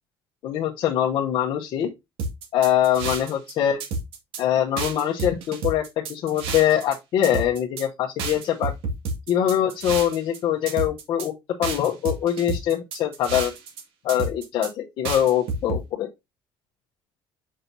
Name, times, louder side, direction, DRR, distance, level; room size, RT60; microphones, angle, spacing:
voice 1, 0.4-1.9 2.5-3.8 4.4-8.7 9.3-11.3 11.6-13.5 14.0-16.1, left 10 dB, 55° left, 1.0 m, -23 dB
sound 1, 2.2-3.5 3.8-4.4 4.8-7.0 7.2-7.8 8.2-10.4 10.7-11.3 11.6-13.8 14.1-14.7 15.0-15.8, right 3 dB, 70° right, 2.0 m, -30 dB
7.6 x 5.6 x 2.7 m
cardioid pair, 155°, 10 cm